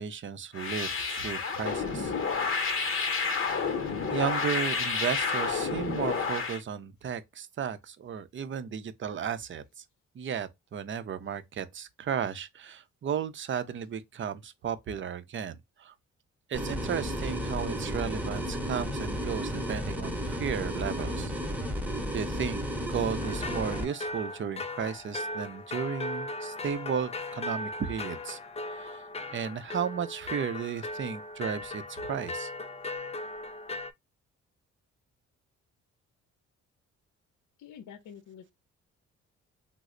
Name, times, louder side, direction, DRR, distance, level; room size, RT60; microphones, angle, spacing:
voice 1, 0.0-2.6 4.1-9.8 10.1-15.9 16.5-21.3 22.1-22.6 22.9-29.0 29.3-32.5, right 7 dB, 40° right, 0.6 m, -34 dB
sound 1, 0.5-6.6, left 5 dB, 45° left, 0.8 m, -30 dB
sound 2, 16.5-23.8, equal, 5° right, 0.9 m, -33 dB
sound 3, 23.2-33.9, left 2 dB, 20° left, 0.4 m, -38 dB
voice 2, 37.6-38.5, left 8 dB, 70° left, 0.7 m, -47 dB
3.1 x 2.0 x 3.7 m
cardioid pair, 75°, 30 cm